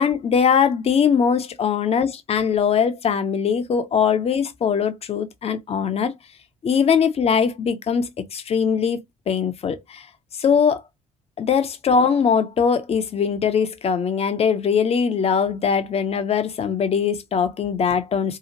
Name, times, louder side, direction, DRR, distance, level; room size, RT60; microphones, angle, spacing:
voice 1, 0.0-6.1 6.6-9.0 9.3-10.1 10.4-10.8 11.4-18.4, left 6 dB, 35° left, 0.6 m, -21 dB
2.8 x 2.4 x 2.8 m
figure-of-eight pair, 45°, 17 cm